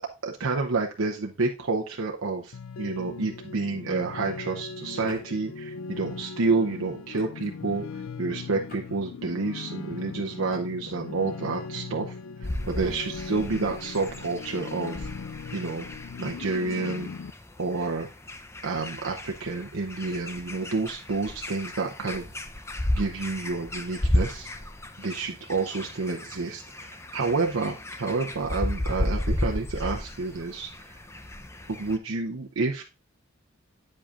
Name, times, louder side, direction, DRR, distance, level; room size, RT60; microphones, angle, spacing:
voice 1, 0.2-7.8 8.2-12.1 12.7-15.1 15.5-15.9 16.2-17.1 17.6-18.1 18.6-22.3 22.9-24.5 25.0-31.0 31.7-32.8, right 3 dB, 85° right, 0 dB, 0.8 m, -29 dB
sound 1, 2.5-17.3, left 5 dB, 85° left, 0.4 m, -39 dB
sound 2, 3.5-3.6 5.0-5.2 7.1-7.6 8.7-9.0 9.4-9.7 10.5-10.6, left 1 dB, 50° left, 4.0 m, -47 dB
sound 3, 12.4-32.0, left 1 dB, 15° left, 0.6 m, -34 dB
8.5 x 7.6 x 2.5 m, 0.29 s
head